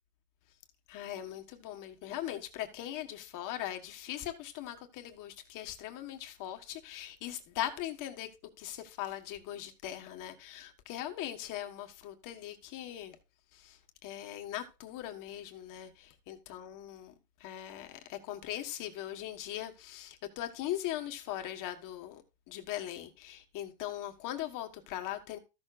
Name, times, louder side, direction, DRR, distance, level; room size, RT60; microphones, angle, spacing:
voice 1, 0.9-8.3 8.6-13.2 13.5-17.1 17.4-25.4, left 12 dB, 40° left, 1.4 m, -40 dB
14.5 x 6.5 x 2.5 m
supercardioid pair, 135°, 49 cm